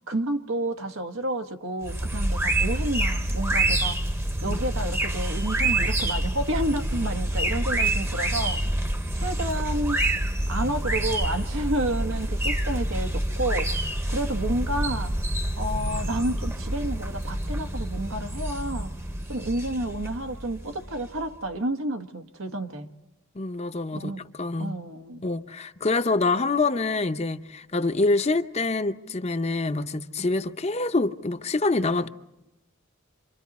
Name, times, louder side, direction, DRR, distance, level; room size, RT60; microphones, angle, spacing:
voice 1, 0.1-4.0 4.4-8.6 9.1-10.0 10.5-15.1 15.6-18.9 19.3-22.9 23.9-24.2 24.6-25.2, right 1 dB, 85° right, 1.6 m, -30 dB
sound 1, 1.8-21.3, right 1 dB, 10° right, 0.9 m, -27 dB
voice 2, 23.3-24.8 25.2-32.1, left 3 dB, 30° left, 0.7 m, -26 dB
29.0 x 26.5 x 4.2 m
head